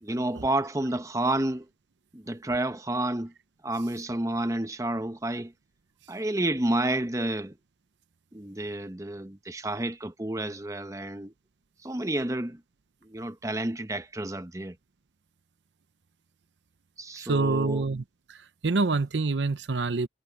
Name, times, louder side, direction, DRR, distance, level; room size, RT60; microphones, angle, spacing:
voice 1, 0.0-1.7 2.1-3.3 3.6-5.5 6.1-7.5 8.3-11.3 11.8-12.6 13.0-14.7 17.0-17.8, right 1 dB, 20° right, 0.9 m, -30 dB
voice 2, 17.2-18.0 18.6-20.1, right 3 dB, 85° right, 0.7 m, -26 dB
head